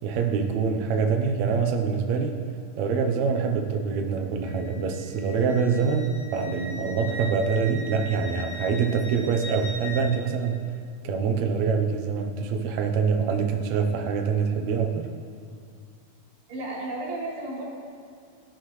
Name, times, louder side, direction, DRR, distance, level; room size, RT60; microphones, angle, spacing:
voice 1, 0.0-2.4 2.8-10.6 11.0-15.1, right 5 dB, 75° right, 3 dB, 1.6 m, -25 dB
Wind instrument woodwind instrument, 4.4-10.2, equal, 80° left, 1.2 m, -40 dB
voice 2, 16.5-17.6, right 2 dB, 90° right, -4 dB, 4.7 m, -33 dB
17.5 x 12.5 x 3.3 m, 2.3 s
omnidirectional pair, 4.3 m